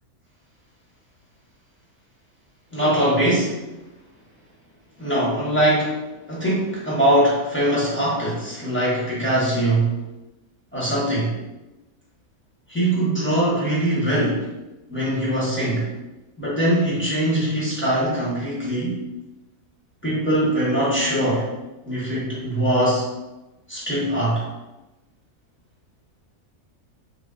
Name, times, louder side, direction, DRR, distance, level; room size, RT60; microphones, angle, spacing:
voice 1, 2.7-3.6 5.0-5.9 6.3-9.9 10.7-11.3 12.7-14.5 14.9-15.9 16.4-19.0 20.0-21.5 21.8-23.0 23.7-24.4, right 1 dB, 10° left, -8 dB, 0.7 m, -22 dB
2.7 x 2.2 x 3.5 m, 1.0 s
omnidirectional pair, 1.6 m